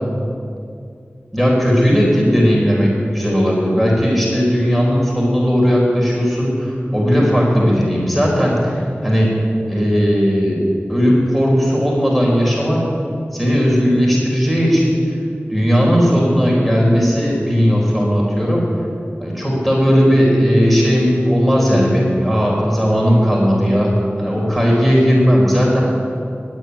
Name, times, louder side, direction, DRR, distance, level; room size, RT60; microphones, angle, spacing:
voice 1, 1.3-9.3 9.7-12.8 13.3-15.0 15.5-18.6 19.2-25.8, equal, ahead, -4 dB, 4.2 m, -16 dB
10.5 x 9.0 x 9.5 m, 2.4 s
wide cardioid pair, 40°, 4 cm